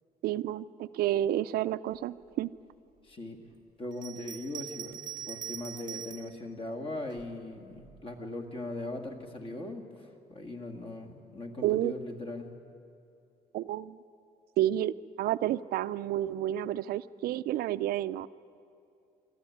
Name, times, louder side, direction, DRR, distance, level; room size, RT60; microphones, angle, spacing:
voice 1, 0.2-2.5 11.6-11.9 13.5-14.0 14.6-18.3, right 13 dB, 80° right, 14 dB, 0.5 m, -30 dB
voice 2, 3.0-3.4 3.8-5.0 5.3-12.5, left 2 dB, 35° left, 5 dB, 2.0 m, -39 dB
Bell, 3.9-6.4 7.1-8.0, right 9 dB, 30° right, 0.9 m, -42 dB
25.0 x 12.5 x 9.4 m, 2.6 s
cardioid pair, 160°, 16 cm